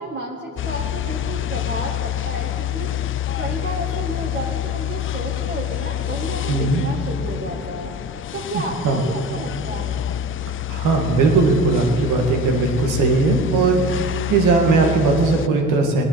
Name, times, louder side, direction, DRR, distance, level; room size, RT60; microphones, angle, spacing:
voice 1, 0.0-2.9 3.4-7.9 8.3-10.0, right 1 dB, 35° right, -2 dB, 1.9 m, -31 dB
sound 1, 0.6-15.5, left 12 dB, 45° left, 0.4 m, -27 dB
voice 2, 6.5-6.8 8.5-9.0 10.7-13.8 14.3-16.0, right 3 dB, 90° right, 1 dB, 2.2 m, -18 dB
19.0 x 10.5 x 5.8 m, 2.7 s
cardioid pair, 90°, 30 cm